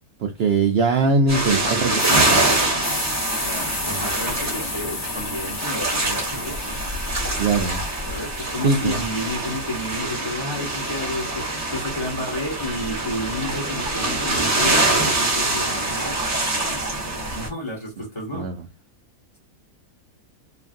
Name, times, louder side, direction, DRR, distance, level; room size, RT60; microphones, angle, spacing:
voice 1, 0.2-2.4 3.9-4.0 7.4-7.8 8.6-8.9 18.3-18.7, right 3 dB, 80° right, 0.5 m, -21 dB
sound 1, 1.3-17.5, right 2 dB, 15° right, 0.9 m, -24 dB
voice 2, 1.5-2.8 3.3-6.8 8.1-16.2 16.5-16.8 17.3-18.5, left 1 dB, 25° left, 0.8 m, -31 dB
sound 2, 1.9-10.0 10.5-14.7, left 6 dB, 65° left, 1.0 m, -36 dB
2.9 x 2.5 x 2.5 m
omnidirectional pair, 1.6 m